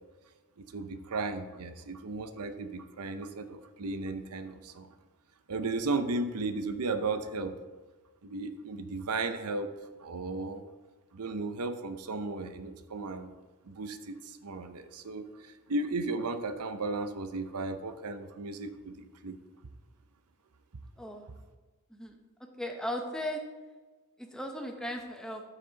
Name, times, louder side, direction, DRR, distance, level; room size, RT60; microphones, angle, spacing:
voice 1, 0.6-4.9 5.5-7.6 8.2-9.7 10.0-10.6 11.1-13.3 13.6-19.4, right 3 dB, 85° right, 9 dB, 0.7 m, -35 dB
voice 2, 22.6-23.4 24.2-25.4, equal, 5° left, 3 dB, 0.9 m, -36 dB
12.5 x 6.0 x 4.0 m, 1.3 s
head